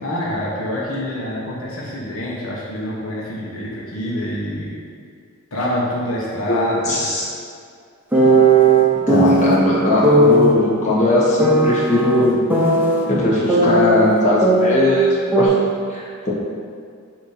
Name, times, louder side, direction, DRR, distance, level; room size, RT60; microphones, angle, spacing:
voice 1, 0.0-4.7 5.5-7.1 11.9-12.0, left 1 dB, 75° left, -5 dB, 1.1 m, -26 dB
voice 2, 6.9-7.3 9.1-12.4 13.1-15.5 15.9-16.3, left 1 dB, 35° left, -7 dB, 1.3 m, -18 dB
sound 1, 8.1-9.6 10.0-10.5 11.4-13.0 13.5-15.1 15.3-15.5, right 2 dB, 10° right, 0.7 m, -16 dB
6.8 x 2.9 x 5.7 m, 2.2 s
head